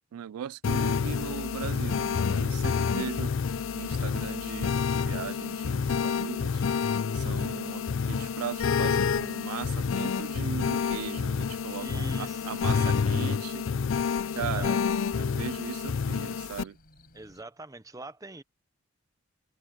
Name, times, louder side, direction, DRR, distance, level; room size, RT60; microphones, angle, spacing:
voice 1, 0.1-3.3 3.7-6.6 7.1-13.7 14.3-14.8 15.2-16.8, right 9 dB, 85° right, 0.3 m, -38 dB
sound 1, 0.6-16.6, left 6 dB, 60° left, 0.4 m, -28 dB
sound 2, 3.5-17.4, left 1 dB, 40° left, 6.7 m, -58 dB
voice 2, 11.8-13.0 14.3-14.8 17.1-18.4, right 2 dB, 15° right, 0.7 m, -43 dB
open air
head